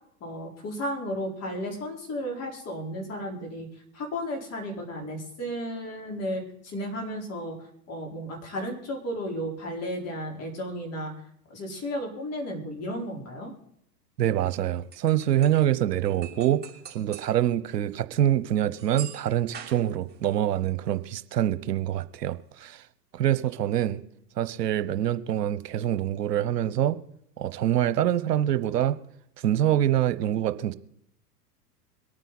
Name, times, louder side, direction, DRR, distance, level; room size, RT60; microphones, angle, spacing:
voice 1, 0.2-3.7 3.9-11.1 11.5-13.5, equal, 30° left, 0 dB, 4.4 m, -34 dB
voice 2, 14.2-16.6 16.9-22.8 23.1-24.0 24.4-27.0 27.4-29.0 29.4-30.7, right 11 dB, 80° right, 14 dB, 1.1 m, -25 dB
sound 1, 14.8-15.7 16.0-17.4 17.7-17.8 18.8-20.3, right 9 dB, 20° right, 3.0 m, -44 dB
23.5 x 9.1 x 4.1 m, 0.73 s
hypercardioid pair, 110°, 48 cm